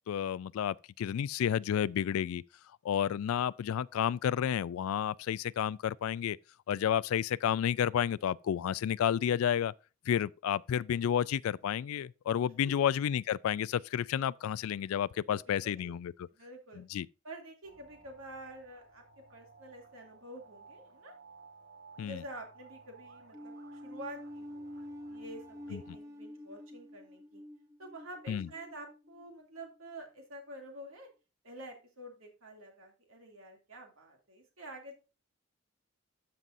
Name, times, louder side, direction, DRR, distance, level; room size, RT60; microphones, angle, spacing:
voice 1, 0.1-2.4 2.8-6.4 6.7-9.7 10.1-16.3 16.8-17.1 22.0-22.2 25.7-25.8 28.3-28.5, left 9 dB, 85° left, 0.3 m, -31 dB
voice 2, 15.3-15.9 16.3-16.8 17.2-19.0 19.3-21.1 22.0-27.4 27.8-31.1 31.4-34.9, right 1 dB, 80° right, 2.6 m, -48 dB
sound 1, 17.6-26.0, right 4 dB, 55° right, 1.8 m, -57 dB
sound 2, 23.3-29.7, equal, 15° right, 0.9 m, -48 dB
13.5 x 5.4 x 2.6 m
head